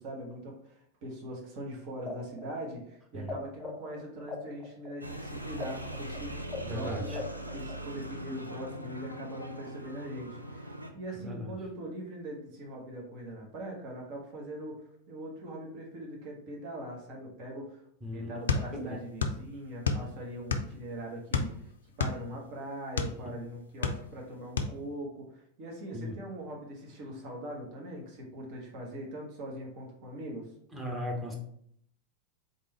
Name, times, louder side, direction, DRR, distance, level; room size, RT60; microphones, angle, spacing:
voice 1, 0.0-6.3 6.7-7.2 7.5-10.7 10.9-17.8 18.1-21.7 22.0-30.5, right 1 dB, 45° right, -1 dB, 1.2 m, -41 dB
sound 1, 2.1-3.3 3.6-8.1, left 5 dB, 15° left, 0.8 m, -41 dB
sound 2, 5.0-10.9, right 1 dB, 90° right, 0.4 m, -40 dB
voice 2, 6.6-7.2 11.1-11.6 18.0-18.3 18.7-19.0 23.3-23.5 25.9-26.2 30.7-31.3, left 1 dB, 10° right, -2 dB, 1.2 m, -37 dB
sound 3, 18.5-19.4 19.7-20.8 21.3-23.2 23.6-24.3 24.6-24.8, left 4 dB, 65° left, 0.4 m, -30 dB
3.9 x 3.7 x 3.2 m, 0.68 s
figure-of-eight pair, 90°, 0 cm